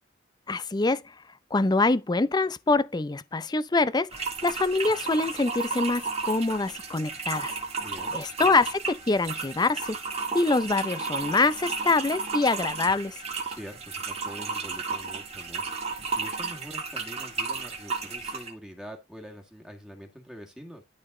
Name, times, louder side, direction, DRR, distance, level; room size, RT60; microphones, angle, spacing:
voice 1, 0.5-1.0 1.5-7.5 8.1-10.0 10.3-13.2, left 3 dB, 20° left, 0.5 m, -25 dB
sound 1, 4.1-18.5, right 4 dB, 35° right, 2.0 m, -33 dB
voice 2, 7.8-8.2 13.5-15.6 16.1-20.8, equal, 5° right, 1.9 m, -44 dB
12.0 x 4.1 x 3.8 m
head